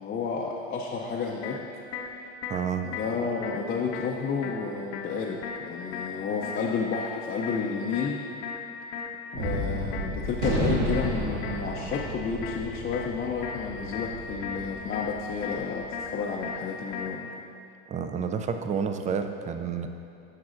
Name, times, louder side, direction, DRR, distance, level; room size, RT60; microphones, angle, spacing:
voice 1, 0.0-1.6 2.8-8.2 9.3-17.3, left 5 dB, 30° left, -3 dB, 0.5 m, -31 dB
sound 1, 1.4-17.4, left 6 dB, 75° left, 0.8 m, -39 dB
voice 2, 2.5-2.9 17.9-19.9, right 6 dB, 25° right, 7 dB, 0.4 m, -29 dB
Gunshot gunfire, 9.4-15.9, right 1 dB, 75° right, 1.4 m, -32 dB
10.5 x 6.1 x 2.6 m, 2.6 s
supercardioid pair, 105°, 33 cm